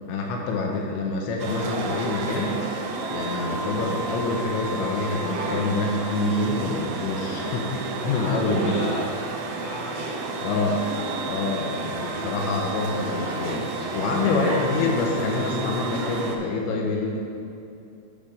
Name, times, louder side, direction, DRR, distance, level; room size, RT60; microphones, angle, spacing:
voice 1, 0.1-2.6 3.1-8.8 10.4-10.8 11.3-17.2, left 3 dB, 80° left, 0 dB, 2.9 m, -26 dB
sound 1, 1.4-16.4, right 3 dB, 85° right, 3.1 m, -31 dB
voice 2, 7.9-9.0 9.5-10.2, left 2 dB, 60° left, -6 dB, 2.3 m, -34 dB
9.0 x 5.6 x 4.9 m, 2.6 s
omnidirectional pair, 5.4 m